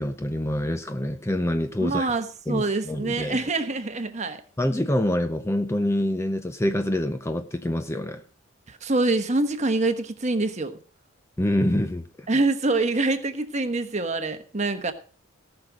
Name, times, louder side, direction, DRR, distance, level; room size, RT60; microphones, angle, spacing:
voice 1, 0.0-2.1 2.5-3.4 4.6-8.2 11.4-12.3, left 1 dB, 10° left, 0.5 m, -26 dB
voice 2, 1.8-4.4 8.7-10.8 12.3-14.9, right 2 dB, 35° right, 1.1 m, -25 dB
17.5 x 6.1 x 5.1 m
head